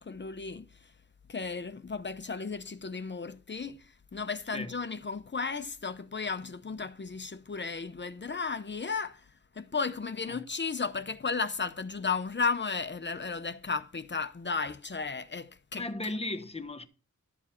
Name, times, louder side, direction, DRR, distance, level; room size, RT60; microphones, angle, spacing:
voice 1, 0.0-0.9 1.3-16.1, left 4 dB, 35° left, 0.7 m, -34 dB
voice 2, 15.7-16.9, left 2 dB, 20° left, 1.1 m, -36 dB
12.0 x 7.3 x 4.4 m
wide cardioid pair, 90°, 31 cm